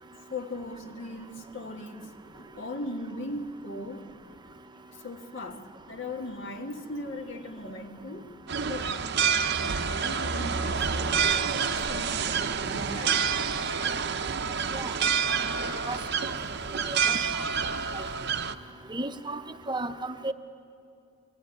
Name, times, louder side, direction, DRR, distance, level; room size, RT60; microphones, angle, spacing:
voice 1, 0.3-4.1 4.9-8.3 8.7-9.2 9.6-13.3 15.7-15.9, left 2 dB, 60° left, 1.6 m, -39 dB
sound 1, 8.5-18.5, right 6 dB, 50° right, 0.7 m, -28 dB
voice 2, 18.9-19.4 19.7-20.3, right 2 dB, 20° right, 0.8 m, -33 dB
24.0 x 17.0 x 9.5 m
head